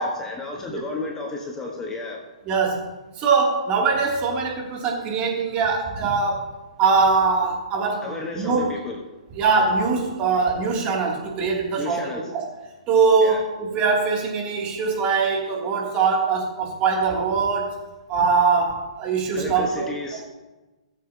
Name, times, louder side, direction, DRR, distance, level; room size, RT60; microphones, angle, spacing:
voice 1, 0.0-2.2 8.0-9.0 11.8-12.2 13.2-13.4 19.3-20.2, left 3 dB, 15° left, 0 dB, 1.3 m, -32 dB
voice 2, 2.5-2.9 3.2-6.5 6.8-8.7 9.4-12.5 12.9-17.7 18.1-19.9, right 4 dB, 30° right, -2 dB, 2.7 m, -22 dB
19.5 x 7.5 x 2.9 m, 1.1 s
hypercardioid pair, 135°, 4 cm